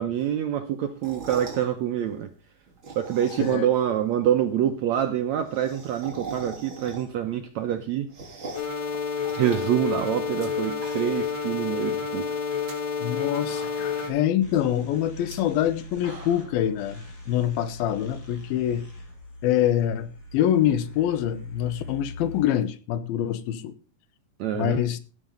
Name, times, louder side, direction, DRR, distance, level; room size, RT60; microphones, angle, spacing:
voice 1, 0.0-2.3 2.9-8.1 8.5-8.6 9.3-12.4 13.9-14.1 24.4-24.8, right 10 dB, 75° right, 1.7 m, -26 dB
sound 1, 0.9-1.7 2.7-3.8 4.1-4.2 4.4-4.5 4.7-4.8 5.1-7.3 7.7-8.8 9.2-10.5 10.7-11.3 11.7-11.8 12.5-12.7 13.2-13.3 13.5-14.1 15.2-15.3 15.8-16.6, right 3 dB, 35° right, 3.8 m, -41 dB
voice 2, 3.4-3.7 13.0-18.9 19.4-23.7 24.5-25.0, left 11 dB, 80° left, 2.7 m, -25 dB
sound 2, 8.5-14.1, left 6 dB, 45° left, 4.4 m, -29 dB
sound 3, 14.4-22.4, left 2 dB, 25° left, 3.2 m, -42 dB
15.0 x 7.0 x 5.1 m
omnidirectional pair, 4.2 m